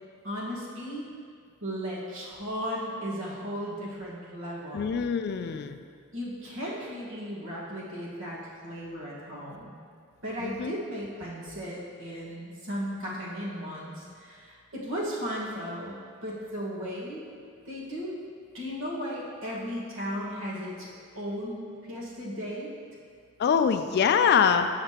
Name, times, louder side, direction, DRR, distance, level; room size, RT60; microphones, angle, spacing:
voice 1, 0.2-1.1 1.6-4.9 6.1-9.8 10.2-17.3 17.6-18.2 18.5-20.9 21.1-22.7, equal, 65° right, -6 dB, 1.5 m, -36 dB
voice 2, 4.7-5.8 10.4-10.8 23.4-24.7, left 7 dB, 50° left, 9 dB, 0.3 m, -24 dB
8.3 x 5.7 x 2.9 m, 2.1 s
head